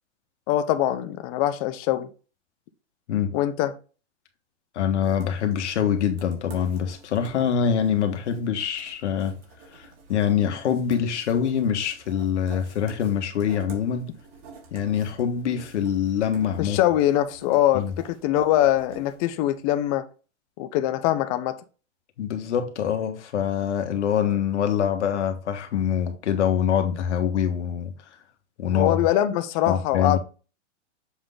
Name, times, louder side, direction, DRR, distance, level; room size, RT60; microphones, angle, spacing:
voice 1, 0.5-2.1 3.3-3.7 16.6-20.0 20.6-21.6 28.7-30.2, left 13 dB, 30° left, 0.6 m, -23 dB
voice 2, 4.7-9.4 9.7-14.1 14.7-16.8 17.7-17.9 22.2-27.9 28.6-29.1 29.7-30.2, left 8 dB, 70° left, 1.6 m, -24 dB
sound 1, 5.0-19.8, right 4 dB, 55° right, 2.7 m, -48 dB
7.1 x 3.8 x 3.9 m
hypercardioid pair, 140°, 36 cm